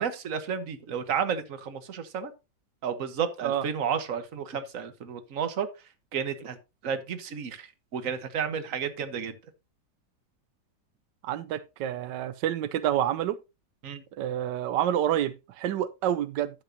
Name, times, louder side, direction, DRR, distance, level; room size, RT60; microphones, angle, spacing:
voice 1, 0.0-2.3 2.8-5.7 6.1-6.6 6.8-9.3 13.8-14.0, right 7 dB, 55° right, 1.5 m, -32 dB
voice 2, 11.2-13.4 14.2-16.6, right 11 dB, 90° right, 1.3 m, -28 dB
11.5 x 8.2 x 2.8 m
omnidirectional pair, 1.8 m